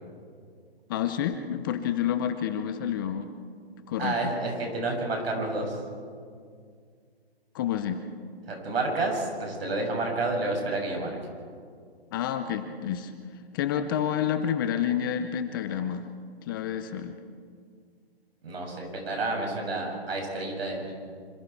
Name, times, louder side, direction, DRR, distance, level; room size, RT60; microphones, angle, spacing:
voice 1, 0.9-3.3 3.9-4.3 7.5-8.0 12.1-13.1 13.5-16.1 16.5-17.2, left 9 dB, 20° left, 9 dB, 0.7 m, -29 dB
voice 2, 4.0-5.8 8.5-11.1 18.4-20.9, right 2 dB, 70° right, 1 dB, 7.3 m, -30 dB
26.5 x 24.5 x 4.7 m, 2.1 s
hypercardioid pair, 150°, 32 cm